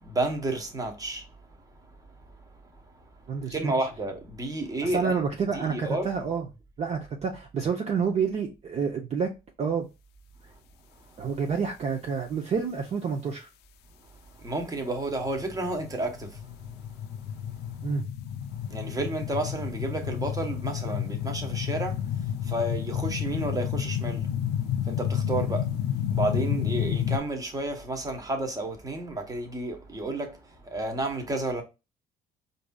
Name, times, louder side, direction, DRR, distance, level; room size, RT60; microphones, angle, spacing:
voice 1, 0.0-1.3 3.5-5.1 5.5-6.1 14.4-16.4 18.7-24.3 24.8-25.8 26.1-31.6, right 2 dB, 20° right, 1.1 m, -31 dB
voice 2, 3.3-3.7 4.8-6.4 6.8-9.3 9.6-9.8 11.2-13.5 17.8-18.0, right 6 dB, 40° right, 0.6 m, -28 dB
sound 1, 15.2-27.2, left 9 dB, 75° left, 0.4 m, -30 dB
4.6 x 2.7 x 2.2 m
cardioid pair, 110°, 17 cm